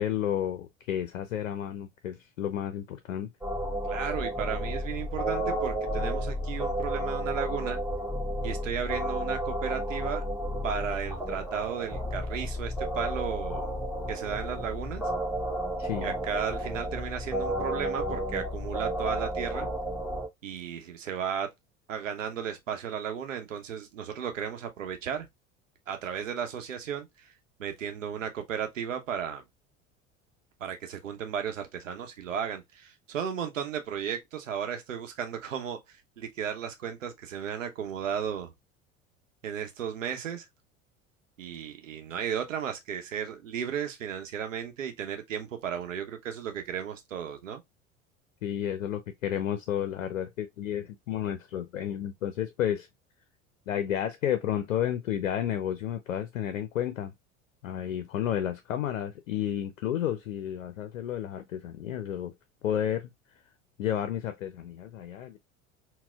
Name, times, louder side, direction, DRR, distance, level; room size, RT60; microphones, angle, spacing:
voice 1, 0.0-3.3 15.8-16.1 48.4-52.9 53.7-57.1 57.6-62.3 62.6-63.1 63.8-65.4, left 10 dB, 75° left, 0.5 m, -31 dB
sound 1, 3.4-20.3, equal, 5° right, 1.1 m, -32 dB
voice 2, 3.8-7.8 8.4-10.2 10.6-13.7 14.1-15.1 16.0-19.7 20.4-21.5 21.9-25.3 25.9-27.3 27.6-29.4 30.6-38.5 39.4-40.5 41.4-47.6, right 8 dB, 80° right, 0.8 m, -34 dB
4.1 x 2.1 x 2.2 m
figure-of-eight pair, 75°, 39 cm